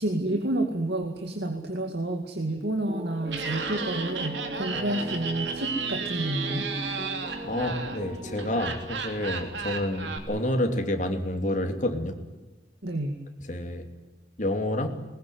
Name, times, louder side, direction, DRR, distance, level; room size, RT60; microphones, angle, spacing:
voice 1, 0.0-6.7 12.8-13.2, right 1 dB, 70° right, 4 dB, 2.3 m, -29 dB
sound 1, 2.9-9.3, right 1 dB, 30° right, 1.4 m, -38 dB
Laughter, 3.2-10.2, right 5 dB, 85° right, 3.3 m, -34 dB
voice 2, 7.4-12.2 13.5-13.9 14.4-14.9, left 1 dB, 45° left, 4 dB, 2.9 m, -28 dB
21.0 x 20.5 x 9.5 m, 1.2 s
head